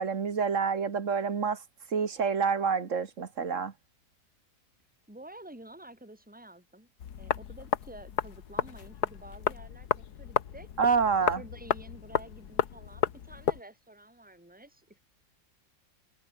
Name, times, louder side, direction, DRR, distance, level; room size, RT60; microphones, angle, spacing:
voice 1, 0.0-1.6 1.9-3.7 10.8-11.4, right 5 dB, 50° right, 1.7 m, -27 dB
voice 2, 5.1-6.9 7.2-10.7 11.3-15.0, right 1 dB, 5° right, 4.5 m, -50 dB
sound 1, 7.0-13.6, left 9 dB, 75° left, 1.7 m, -32 dB
omnidirectional pair, 1.7 m